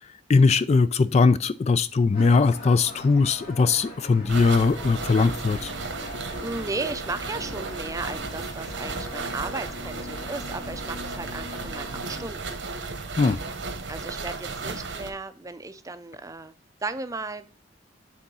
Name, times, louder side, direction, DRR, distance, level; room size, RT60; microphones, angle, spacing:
voice 1, 0.3-5.7 13.2-13.4, left 4 dB, 35° left, 0.3 m, -20 dB
sound 1, 2.1-12.3, left 1 dB, 55° left, 4.4 m, -42 dB
sound 2, 4.3-15.1, right 3 dB, 80° right, 1.1 m, -34 dB
voice 2, 6.4-12.4 13.9-16.5 16.8-17.5, right 3 dB, 20° right, 0.5 m, -35 dB
8.4 x 3.8 x 5.4 m
head